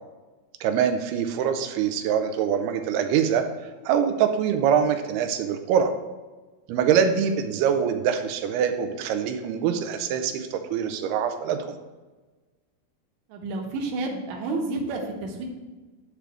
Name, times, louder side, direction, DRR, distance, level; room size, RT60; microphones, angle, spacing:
voice 1, 0.6-3.4 3.9-5.9 6.7-11.6, right 8 dB, 90° right, 7 dB, 2.7 m, -24 dB
voice 2, 13.3-15.4, right 2 dB, 65° right, 1 dB, 2.0 m, -30 dB
10.5 x 3.4 x 6.1 m, 1.3 s
omnidirectional pair, 4.5 m